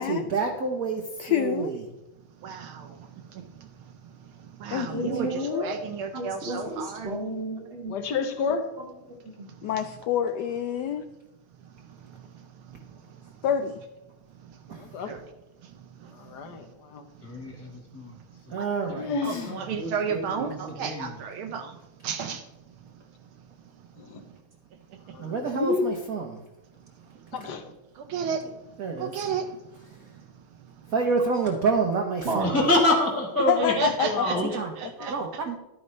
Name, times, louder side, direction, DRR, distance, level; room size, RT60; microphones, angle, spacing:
voice 1, 0.0-1.8 14.7-14.8 18.5-19.4 25.2-26.3 28.8-29.1 30.9-32.6 34.5-34.7 35.1-35.6, right 4 dB, 55° right, 2 dB, 1.0 m, -28 dB
voice 2, 1.2-1.7 4.7-5.7 9.6-11.0 13.4-13.8 33.5-34.2 35.0-35.1, left 9 dB, 85° left, 9 dB, 0.9 m, -27 dB
voice 3, 2.4-7.1 9.5-9.7 11.6-13.4 14.3-15.2 15.6-16.7 17.3-17.7 18.3-18.7 19.2-22.7 24.1-24.4 24.9-25.3 28.0-28.6 28.9-29.6 29.9-30.1 30.6-30.9 33.6-35.6, right 6 dB, 75° right, 5 dB, 1.5 m, -35 dB
voice 4, 4.9-5.8 6.1-8.0 9.1-9.5 32.2-32.6 35.0-35.2, right 2 dB, 40° right, -3 dB, 1.2 m, -33 dB
voice 5, 7.8-8.7 14.7-15.1 16.1-17.1 19.0-19.6 24.0-24.2 25.1-25.9 27.3-27.6, left 4 dB, 60° left, 7 dB, 1.3 m, -30 dB
voice 6, 17.2-18.1 19.7-21.1 32.4-33.8 34.0-34.5, left 1 dB, 10° left, -3 dB, 1.1 m, -26 dB
12.0 x 9.4 x 3.2 m, 0.96 s
omnidirectional pair, 2.4 m